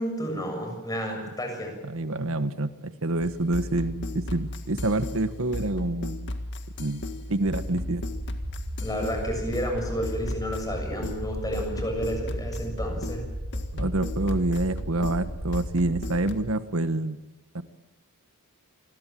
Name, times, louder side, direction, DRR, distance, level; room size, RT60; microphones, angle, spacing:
voice 1, 0.0-1.7 8.8-13.2 13.5-13.6, equal, 15° left, 3 dB, 6.8 m, -31 dB
voice 2, 1.8-6.3 6.8-7.0 7.3-8.0 13.7-17.2 17.5-17.6, right 2 dB, 65° right, 12 dB, 1.4 m, -27 dB
sound 1, 3.2-16.5, left 1 dB, 55° left, 1.9 m, -36 dB
sound 2, 7.4-16.2, equal, 45° right, 1.8 m, -36 dB
28.0 x 21.5 x 7.7 m, 1.1 s
head